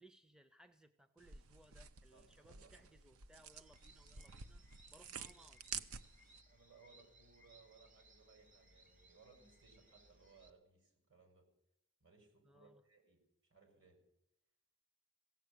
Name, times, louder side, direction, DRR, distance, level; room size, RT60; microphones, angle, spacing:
voice 1, 0.0-4.6 4.9-5.6 12.4-12.8, right 1 dB, 5° right, 10 dB, 0.4 m, -65 dB
sound 1, 1.2-6.4, right 7 dB, 80° right, 0.7 m, -51 dB
voice 2, 2.1-2.8 6.5-11.4 12.0-14.0, right 4 dB, 60° right, 3 dB, 4.8 m, -66 dB
sound 2, 3.5-10.5, right 1 dB, 35° right, 1.4 m, -66 dB
16.5 x 7.5 x 9.3 m, 0.80 s
head